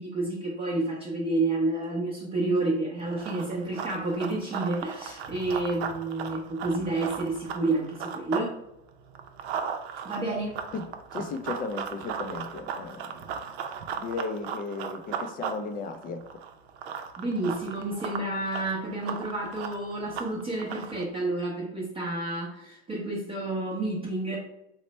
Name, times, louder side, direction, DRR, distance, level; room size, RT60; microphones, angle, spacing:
voice 1, 0.0-8.6 10.0-10.6 17.2-24.4, right 2 dB, 15° right, -5 dB, 0.7 m, -30 dB
Run, 3.0-8.5 8.8-21.0, right 7 dB, 80° right, 0.6 m, -37 dB
voice 2, 11.1-13.1 14.0-16.2, left 4 dB, 30° left, 8 dB, 0.4 m, -35 dB
3.2 x 2.1 x 4.0 m, 0.86 s
supercardioid pair, 120°, 32 cm